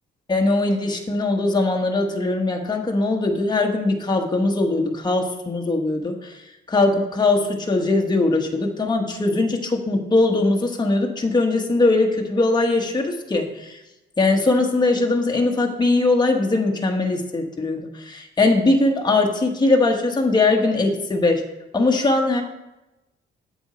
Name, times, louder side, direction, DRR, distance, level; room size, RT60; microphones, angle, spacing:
voice 1, 0.3-6.3 6.7-13.8 14.2-21.4 21.7-22.4, left 2 dB, 20° left, 1 dB, 1.2 m, -20 dB
7.9 x 6.1 x 4.3 m, 0.97 s
cardioid pair, 90°, 20 cm